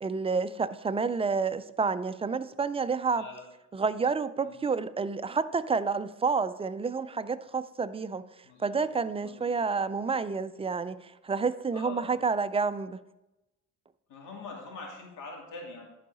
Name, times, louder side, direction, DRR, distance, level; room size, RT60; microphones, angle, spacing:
voice 1, 0.0-3.3 3.7-8.2 8.6-13.0, right 5 dB, 20° right, 13 dB, 0.3 m, -29 dB
voice 2, 3.1-3.4 4.4-4.6 8.4-8.9 9.2-9.5 11.7-12.2 14.1-15.9, left 4 dB, 85° left, -1 dB, 2.5 m, -44 dB
11.0 x 4.7 x 4.0 m, 0.97 s
cardioid pair, 90°, 30 cm